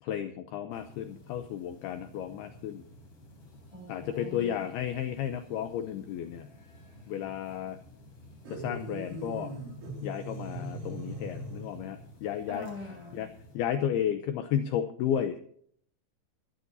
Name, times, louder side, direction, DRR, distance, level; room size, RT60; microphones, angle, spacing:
voice 1, 0.0-2.8 3.9-6.5 7.1-7.8 8.5-9.5 10.0-12.7 13.1-15.4, left 9 dB, 85° left, 9 dB, 2.2 m, -33 dB
sound 1, 0.7-13.6, left 1 dB, 35° left, 4.2 m, -53 dB
voice 2, 3.7-4.7 12.5-13.2, left 2 dB, 5° right, -1 dB, 7.2 m, -43 dB
sound 2, 8.5-12.0, right 1 dB, 70° right, 6.4 m, -40 dB
22.0 x 12.0 x 2.8 m, 0.63 s
omnidirectional pair, 5.5 m